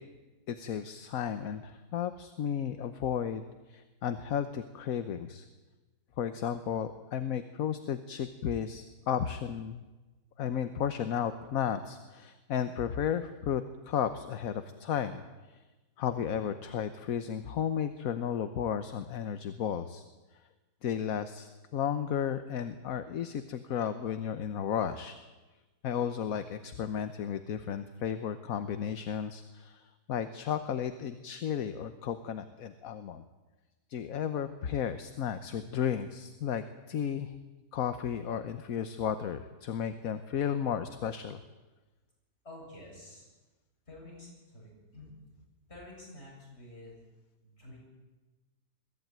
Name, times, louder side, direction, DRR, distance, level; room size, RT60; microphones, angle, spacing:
voice 1, 0.5-5.4 6.2-9.8 10.4-15.6 16.0-20.0 20.8-25.1 25.8-33.2 33.9-37.3 37.7-41.4, left 8 dB, 65° left, 10 dB, 1.3 m, -33 dB
voice 2, 42.4-43.3 43.9-45.1 45.7-46.9 47.4-47.8, left 1 dB, 40° left, -3 dB, 8.2 m, -49 dB
22.5 x 14.5 x 9.1 m, 1.2 s
omnidirectional pair, 1.7 m